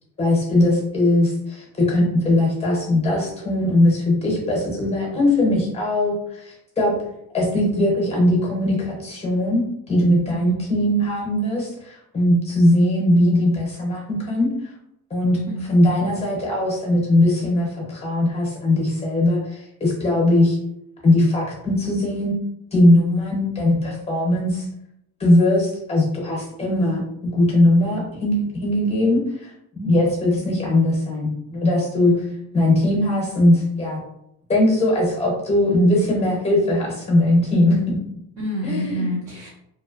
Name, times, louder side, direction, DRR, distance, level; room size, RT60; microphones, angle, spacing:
voice 1, 0.2-6.1 6.4-6.9 7.3-14.5 15.1-20.6 21.0-22.3 22.7-24.6 25.2-27.0 27.3-29.5 29.8-32.1 32.5-34.0 34.5-38.0 38.6-39.1, left 1 dB, 15° left, -2 dB, 0.7 m, -20 dB
voice 2, 31.9-32.4 38.4-39.5, equal, 40° right, -6 dB, 0.6 m, -28 dB
2.8 x 2.0 x 2.4 m, 0.77 s
cardioid pair, 160°, 37 cm